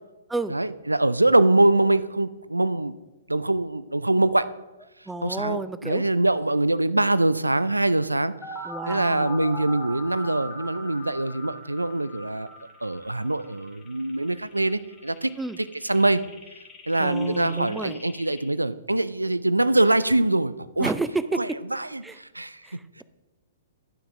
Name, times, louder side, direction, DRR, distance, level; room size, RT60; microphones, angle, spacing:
voice 1, 0.5-3.0 3.3-4.5 5.2-8.3 8.9-12.5 12.8-15.3 15.6-16.2 16.9-20.9 21.4-22.8, right 2 dB, 90° right, 16 dB, 0.3 m, -23 dB
voice 2, 5.1-6.0 8.6-9.5 15.4-15.6 17.0-18.0 20.8-21.6 22.0-22.2 22.6-23.0, right 3 dB, 5° right, 13 dB, 0.4 m, -31 dB
sound 1, 8.4-18.4, left 1 dB, 10° left, 2.2 m, -41 dB
11.0 x 5.9 x 4.7 m, 1.1 s
figure-of-eight pair, 115°, 0 cm